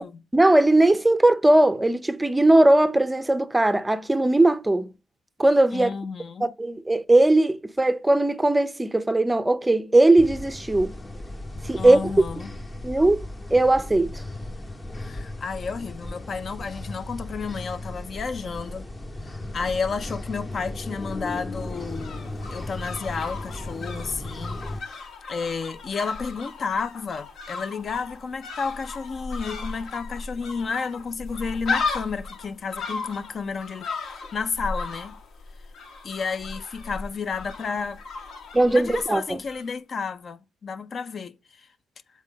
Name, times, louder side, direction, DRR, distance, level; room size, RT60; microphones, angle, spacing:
voice 1, 0.3-4.9 5.4-5.9 6.4-10.9 11.7-12.1 12.8-13.2 13.5-14.1 38.5-39.4, right 2 dB, 10° right, 0.5 m, -19 dB
voice 2, 5.7-6.5 11.8-12.6 15.0-18.8 19.2-24.6 25.3-35.1 36.0-38.0 38.7-41.7, left 5 dB, 45° left, 0.4 m, -31 dB
sound 1, 10.2-24.8, left 1 dB, 25° left, 0.8 m, -36 dB
sound 2, 21.5-39.7 39.9-40.0, left 4 dB, 70° left, 0.9 m, -36 dB
7.2 x 4.1 x 3.7 m
cardioid pair, 90°, 0 cm